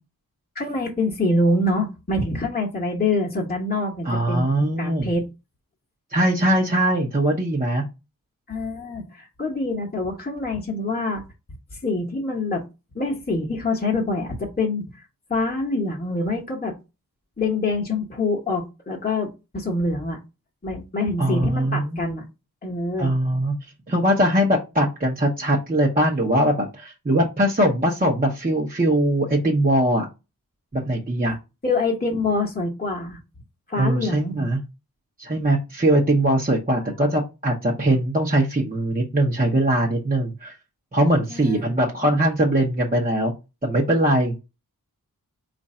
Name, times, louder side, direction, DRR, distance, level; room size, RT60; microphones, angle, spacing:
voice 1, 0.5-4.5 4.8-5.3 8.5-11.2 11.7-12.6 12.9-15.0 15.3-16.7 17.4-20.2 20.6-22.2 22.6-23.1 31.6-33.2 33.7-34.3 36.8-36.9 41.3-41.7, left 2 dB, 25° left, -1 dB, 1.1 m, -25 dB
voice 2, 4.0-5.1 6.1-7.8 21.2-22.0 23.0-23.5 23.9-30.1 30.7-31.4 33.8-34.6 35.2-40.5 40.9-43.3 43.6-44.3, right 1 dB, 25° right, -3 dB, 0.9 m, -21 dB
4.5 x 2.6 x 4.2 m, 0.26 s
wide cardioid pair, 95°, 36 cm